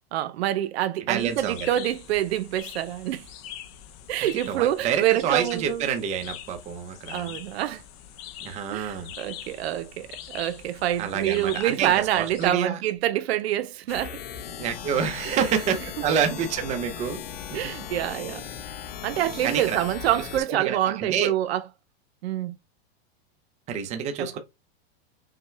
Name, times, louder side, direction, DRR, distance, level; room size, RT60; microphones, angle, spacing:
voice 1, 0.1-3.3 4.1-5.9 7.1-7.8 8.7-14.2 17.5-18.5 19.0-21.6 22.2-22.6 24.2-24.4, right 12 dB, 80° right, 0.7 m, -26 dB
voice 2, 1.1-1.7 4.5-7.4 8.4-9.1 11.0-12.8 14.6-17.2 19.4-19.8 20.3-21.3 23.7-24.4, right 7 dB, 20° right, 0.6 m, -28 dB
sound 1, 1.2-12.5, left 10 dB, 35° left, 0.6 m, -43 dB
sound 2, 13.9-20.4, left 8 dB, 65° left, 1.0 m, -38 dB
5.7 x 2.2 x 3.1 m
supercardioid pair, 160°, 31 cm